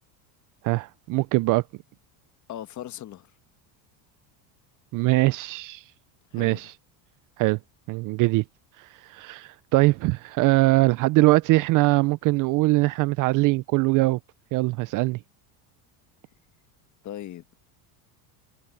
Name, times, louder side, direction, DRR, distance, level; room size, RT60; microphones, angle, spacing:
voice 1, 0.6-1.6 4.9-5.8 6.3-6.7 7.4-7.6 7.9-8.4 9.1-14.2 14.5-15.2, right 21 dB, 45° right, 0.4 m, -22 dB
voice 2, 2.5-3.3 6.3-6.7 17.0-17.6, left 12 dB, 35° left, 1.3 m, -38 dB
cardioid pair, 140°, 48 cm